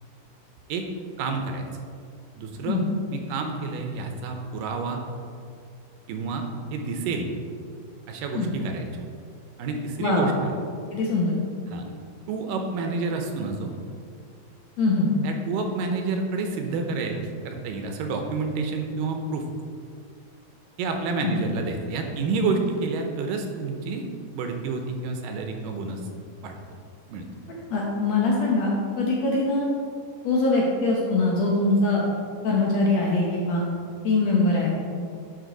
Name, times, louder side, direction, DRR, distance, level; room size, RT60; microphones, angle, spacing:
voice 1, 1.2-1.6 2.4-2.8 3.1-5.0 6.1-6.5 6.7-7.3 8.1-8.9 9.6-10.6 11.7-11.9 12.3-13.7 15.2-17.2 17.5-19.4 20.8-24.1 24.3-26.0 26.4-26.6 27.1-27.2, right 4 dB, 80° right, 4 dB, 2.3 m, -29 dB
voice 2, 10.0-10.3 10.9-11.4 14.8-15.1 21.2-21.4 27.7-29.7 30.2-32.0 32.4-33.6 34.0-34.8, left 2 dB, 65° left, -3 dB, 1.8 m, -23 dB
11.0 x 5.6 x 3.9 m, 2.2 s
omnidirectional pair, 4.1 m